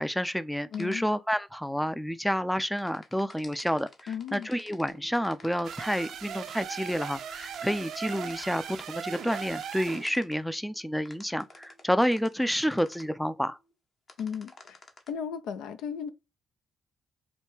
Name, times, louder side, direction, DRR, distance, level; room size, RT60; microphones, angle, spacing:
voice 1, 0.0-13.6, equal, 5° left, 0.4 m, -29 dB
voice 2, 0.7-1.0 4.1-4.5 14.2-14.8 15.1-16.1, left 7 dB, 75° left, 0.4 m, -35 dB
sound 1, 0.7-1.0 2.8-6.1 7.4-10.4 11.1-13.0 14.1-15.1, left 3 dB, 45° left, 0.9 m, -51 dB
sound 2, 4.9-13.7, right 2 dB, 90° left, 1.7 m, -62 dB
sound 3, 5.6-10.1, right 8 dB, 65° right, 0.5 m, -38 dB
5.0 x 2.2 x 3.3 m
hypercardioid pair, 45°, 0 cm